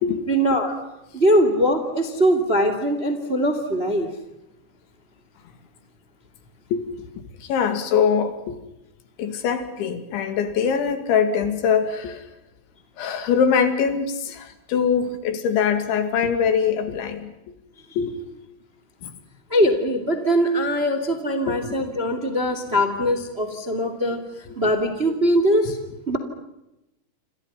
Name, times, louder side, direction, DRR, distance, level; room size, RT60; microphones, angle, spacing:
voice 1, 0.3-0.8 1.1-4.1 19.5-24.2 24.6-25.8 26.1-26.2, equal, 20° right, 8 dB, 2.0 m, -21 dB
voice 2, 6.7-8.6 9.2-12.2 13.0-17.3 18.0-18.3 19.0-19.1 21.5-21.8 24.5-24.6, left 6 dB, 70° left, 9 dB, 4.6 m, -23 dB
29.5 x 27.5 x 5.7 m, 0.91 s
omnidirectional pair, 5.6 m